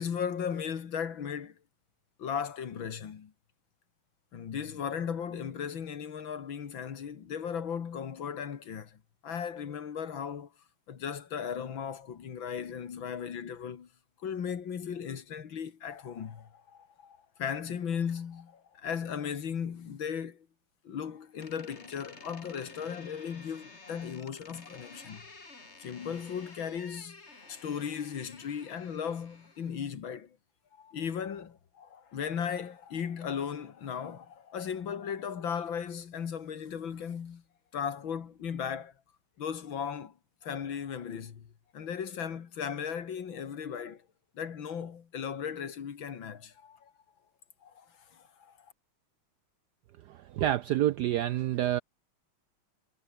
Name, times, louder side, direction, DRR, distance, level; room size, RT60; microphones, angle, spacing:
voice 1, 0.0-1.6 2.2-3.3 4.3-10.5 10.9-13.9 14.2-20.5 20.8-25.3 25.8-27.2 27.5-30.4 30.7-37.4 37.7-38.9 39.4-40.1 40.4-41.5 41.7-44.0 44.3-46.9 47.6-48.7, left 7 dB, 65° left, 2.5 m, -37 dB
Door, 21.4-29.9, left 3 dB, 30° left, 3.4 m, -52 dB
voice 2, 50.3-51.8, right 13 dB, 75° right, 0.9 m, -27 dB
omnidirectional pair, 2.3 m